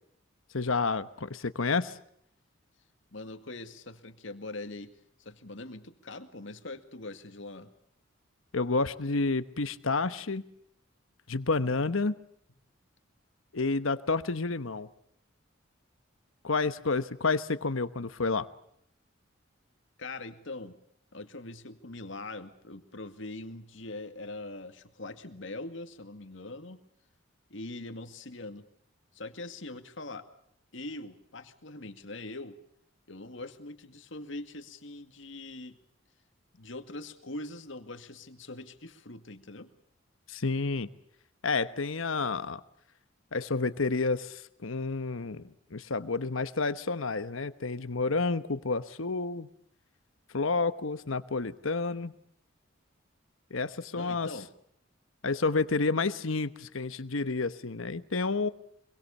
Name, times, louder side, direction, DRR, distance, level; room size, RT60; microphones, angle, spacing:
voice 1, 0.5-1.9 8.5-10.4 11.3-12.1 13.5-14.9 16.4-18.5 40.3-40.9 41.4-42.6 43.3-45.4 45.7-49.5 50.3-52.1 53.5-54.3 55.2-58.5, left 3 dB, 85° left, 12 dB, 1.1 m, -30 dB
voice 2, 3.1-4.9 5.2-7.7 20.0-20.8 21.1-26.8 27.5-28.7 29.1-30.3 30.7-32.6 33.1-35.8 36.5-39.7 53.9-54.5, left 2 dB, 70° left, 8 dB, 2.1 m, -42 dB
25.5 x 23.0 x 7.1 m, 0.70 s
head